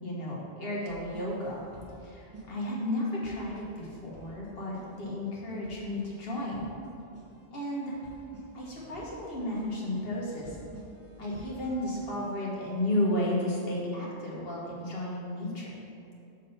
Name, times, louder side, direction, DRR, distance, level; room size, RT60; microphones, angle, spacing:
voice 1, 0.0-1.6 2.0-6.7 7.5-8.0 8.5-10.6 11.2-15.7, left 1 dB, 55° left, -5 dB, 1.5 m, -33 dB
sound 1, 0.9-12.4, right 2 dB, 15° right, 1.2 m, -51 dB
6.3 x 3.9 x 5.4 m, 2.7 s
omnidirectional pair, 1.2 m